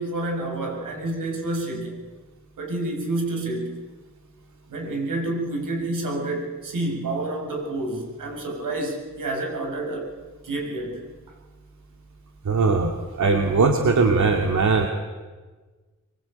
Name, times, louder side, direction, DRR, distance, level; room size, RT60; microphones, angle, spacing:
voice 1, 0.0-2.0 2.6-3.7 4.7-10.1 10.4-11.0, right 2 dB, 85° right, 2 dB, 7.0 m, -29 dB
voice 2, 12.5-14.9, right 4 dB, 65° right, 3 dB, 2.7 m, -20 dB
23.0 x 23.0 x 9.0 m, 1.3 s
cardioid pair, 55°, 31 cm